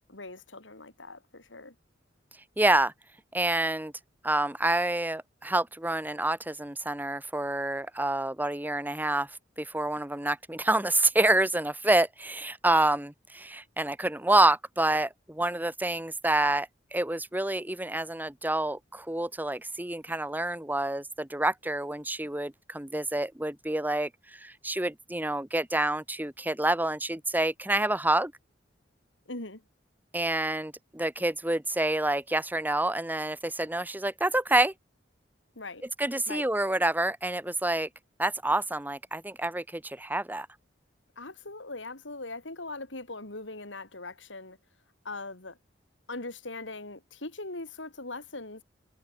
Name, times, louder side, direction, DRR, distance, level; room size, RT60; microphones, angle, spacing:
voice 1, 0.1-1.7 29.3-29.6 35.5-35.8 36.3-36.5 41.2-44.6 45.0-45.6 46.1-48.6, left 2 dB, 80° left, 4.8 m, -40 dB
voice 2, 2.6-2.9 3.3-3.9 4.2-9.3 9.6-28.3 30.1-34.7 36.0-37.9 38.2-40.5, right 2 dB, 10° right, 1.5 m, -28 dB
head